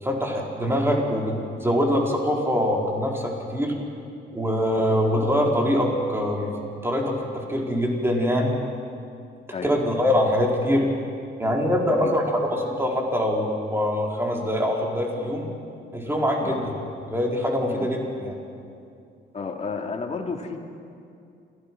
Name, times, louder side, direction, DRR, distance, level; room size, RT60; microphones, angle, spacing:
voice 1, 0.0-3.8 4.3-6.5 6.8-8.6 9.6-10.9 11.4-12.2 12.5-15.5 15.9-16.6 17.1-18.3, equal, 10° right, -1 dB, 4.4 m, -24 dB
voice 2, 19.3-20.6, left 4 dB, 35° left, 2 dB, 2.7 m, -32 dB
28.0 x 17.0 x 6.2 m, 2.5 s
cardioid pair, 90°, 20 cm